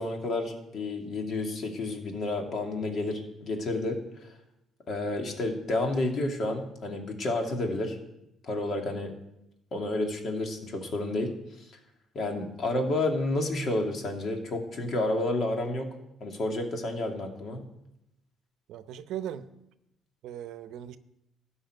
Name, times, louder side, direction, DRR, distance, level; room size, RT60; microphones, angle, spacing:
voice 1, 0.0-4.3 4.9-8.0 8.4-9.1 9.7-11.3 11.6-11.7 12.1-15.9 16.2-17.7, left 2 dB, 50° left, 2.4 m, -30 dB
voice 2, 18.7-19.5 20.2-21.0, right 10 dB, 75° right, 0.7 m, -38 dB
13.0 x 5.7 x 9.1 m
supercardioid pair, 80°, 0 cm